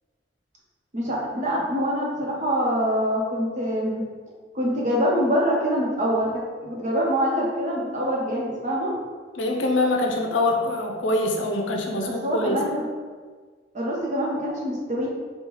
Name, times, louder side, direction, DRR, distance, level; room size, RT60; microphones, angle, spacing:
voice 1, 0.9-4.1 4.5-8.9 12.1-12.9 13.7-15.1, equal, 40° right, -3 dB, 0.9 m, -25 dB
voice 2, 9.4-12.6, left 2 dB, 85° left, 1 dB, 0.6 m, -24 dB
5.4 x 2.3 x 3.1 m, 1.5 s
head